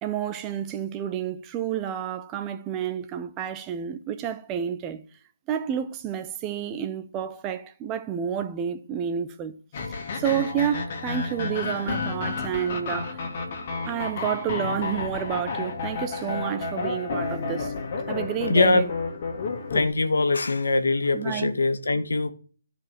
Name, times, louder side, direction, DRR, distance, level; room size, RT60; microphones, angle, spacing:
voice 1, 0.0-5.0 5.5-9.5 10.2-13.2 13.9-17.7 18.1-18.9 21.1-21.5, right 9 dB, 15° right, 0.6 m, -30 dB
sound 1, 9.7-19.9, left 4 dB, 35° left, 2.1 m, -31 dB
voice 2, 18.5-18.8 19.7-22.3, left 3 dB, 70° left, 1.6 m, -22 dB
12.0 x 5.1 x 6.9 m
hypercardioid pair, 165°, 0 cm